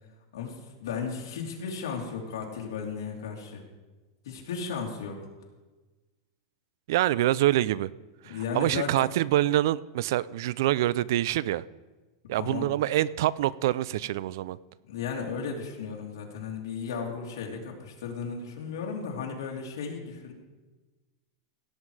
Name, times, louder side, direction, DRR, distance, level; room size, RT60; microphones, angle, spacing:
voice 1, 0.3-3.6 4.2-5.2 8.3-8.9 12.4-12.7 14.9-20.3, left 6 dB, 80° left, 0 dB, 2.7 m, -35 dB
voice 2, 6.9-7.9 8.2-11.6 12.3-14.6, right 14 dB, 55° right, 21 dB, 0.3 m, -26 dB
17.0 x 7.6 x 4.8 m, 1.2 s
supercardioid pair, 170°, 2 cm